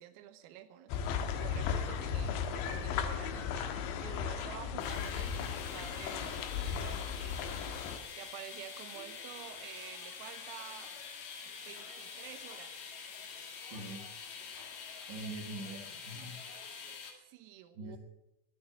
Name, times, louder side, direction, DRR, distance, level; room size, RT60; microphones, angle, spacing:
voice 1, 0.0-10.9 11.6-12.8 17.1-18.0, right 11 dB, 90° right, 10 dB, 3.7 m, -50 dB
sound 1, 0.9-8.0, left 7 dB, 75° left, 3.1 m, -36 dB
sound 2, 4.8-17.1, left 6 dB, 55° left, 2.7 m, -46 dB
voice 2, 13.7-14.1 15.1-16.4 17.7-18.0, right 2 dB, 65° right, 1 dB, 3.6 m, -43 dB
19.5 x 7.0 x 8.0 m, 0.91 s
omnidirectional pair, 6.0 m